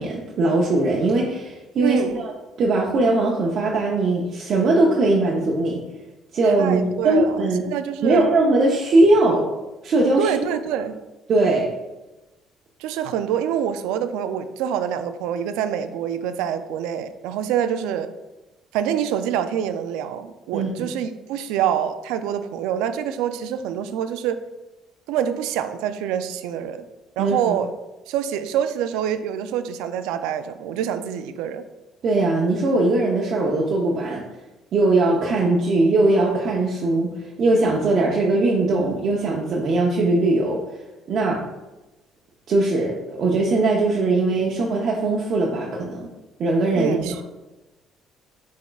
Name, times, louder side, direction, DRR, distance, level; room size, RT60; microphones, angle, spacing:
voice 1, 0.0-2.3 2.6-5.8 6.3-7.7 8.0-9.4 9.8-10.3 11.3-11.7 20.5-20.9 27.2-27.5 32.0-34.3 34.7-37.1 37.4-40.6 41.1-41.4 42.5-46.1 46.4-47.2, right 2 dB, 55° right, -3 dB, 0.6 m, -20 dB
voice 2, 1.8-2.2 6.4-8.3 10.2-11.0 12.8-18.1 18.7-24.4 25.1-26.9 27.2-27.7 28.1-31.7 46.7-47.2, right 9 dB, 85° right, 10 dB, 0.3 m, -26 dB
5.9 x 3.6 x 2.3 m, 1.0 s
cardioid pair, 90°, 0 cm